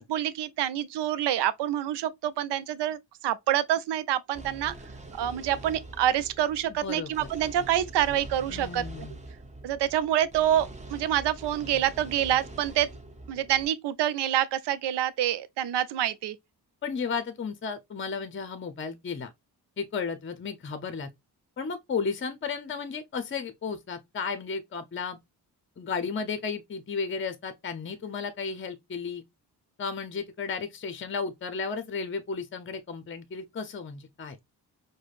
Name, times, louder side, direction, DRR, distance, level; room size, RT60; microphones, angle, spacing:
voice 1, 0.0-4.7 5.1-9.1 9.6-12.9 13.3-16.4, right 11 dB, 80° right, 0.6 m, -27 dB
sound 1, 4.3-13.7, right 2 dB, 15° right, 0.9 m, -44 dB
voice 2, 6.8-7.3 8.5-9.2 16.8-19.3 19.8-21.1 21.6-25.2 25.8-29.2 29.8-34.4, left 5 dB, 30° left, 0.6 m, -34 dB
4.9 x 2.2 x 2.4 m
cardioid pair, 75°, 40 cm